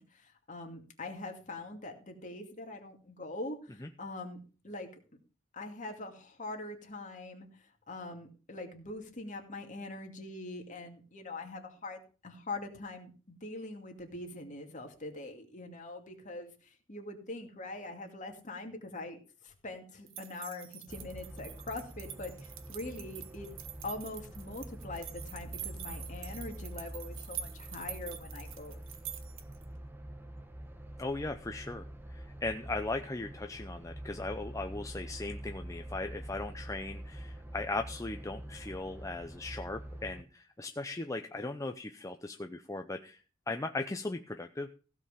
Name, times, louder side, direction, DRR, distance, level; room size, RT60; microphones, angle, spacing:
voice 1, 0.0-4.4 4.6-4.9 5.5-7.5 7.9-22.3 22.7-23.5 23.8-28.8, left 2 dB, 40° left, 3 dB, 2.5 m, -43 dB
sound 1, 20.1-29.6, right 10 dB, 80° right, 1.5 m, -46 dB
sound 2, 20.9-40.2, right 1 dB, 10° right, 1.1 m, -46 dB
voice 2, 31.0-43.2 43.5-44.7, left 2 dB, 15° left, 6 dB, 0.6 m, -38 dB
16.0 x 5.6 x 6.8 m, 0.37 s
head